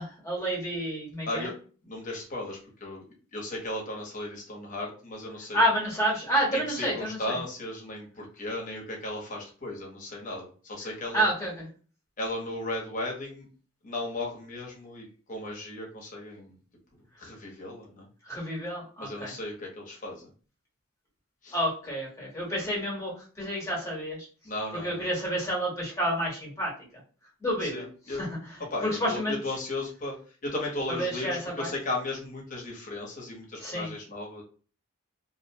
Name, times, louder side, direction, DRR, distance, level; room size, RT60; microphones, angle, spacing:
voice 1, 0.0-1.5 5.5-7.4 11.1-11.7 18.3-19.3 21.5-24.3 24.8-26.7 27.4-28.3 28.5-28.6 29.0-29.4 30.9-31.7 33.6-33.9, equal, 15° left, -5 dB, 1.0 m, -29 dB
voice 2, 1.3-1.6 1.8-3.0 3.3-5.6 6.5-11.3 12.2-13.5 13.8-16.6 17.2-18.1 19.0-20.3 21.4-21.6 24.4-25.1 27.6-28.2 28.7-30.2 30.4-34.4, left 2 dB, 35° left, -1 dB, 0.8 m, -35 dB
2.5 x 2.1 x 2.7 m, 0.38 s
head